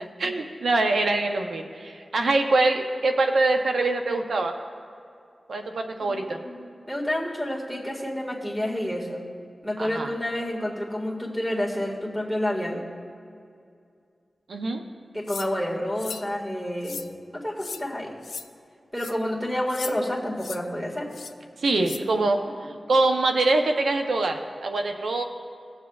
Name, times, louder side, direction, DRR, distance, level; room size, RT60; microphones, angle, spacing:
voice 1, 0.2-4.5 5.5-6.4 9.8-10.1 14.5-14.8 21.6-25.2, right 2 dB, 85° right, 4 dB, 0.7 m, -24 dB
voice 2, 6.0-9.2 9.6-12.8 15.1-17.0 17.3-18.1 18.9-21.1 22.4-22.7, left 1 dB, ahead, -3 dB, 1.8 m, -29 dB
sound 1, 15.3-15.5 16.0-16.3 16.8-17.1 17.6-17.8 18.2-18.4 19.0-19.1 19.7-19.9 20.4-20.6 21.1-21.3 21.8-22.0, left 5 dB, 90° left, 0.4 m, -36 dB
20.0 x 7.2 x 2.3 m, 2.4 s
wide cardioid pair, 85°, 0 cm